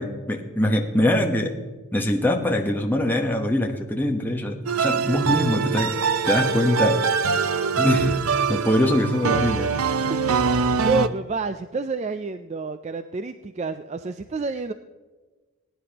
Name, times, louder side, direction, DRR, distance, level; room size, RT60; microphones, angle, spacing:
voice 1, 0.0-1.5 1.9-7.2 7.8-8.2 8.5-9.7, left 1 dB, 10° left, 2 dB, 1.0 m, -23 dB
sound 1, 4.7-11.1, right 5 dB, 85° right, 0.6 m, -23 dB
voice 2, 10.8-14.7, right 4 dB, 30° right, 9 dB, 0.3 m, -28 dB
20.0 x 10.0 x 2.9 m, 1.3 s
head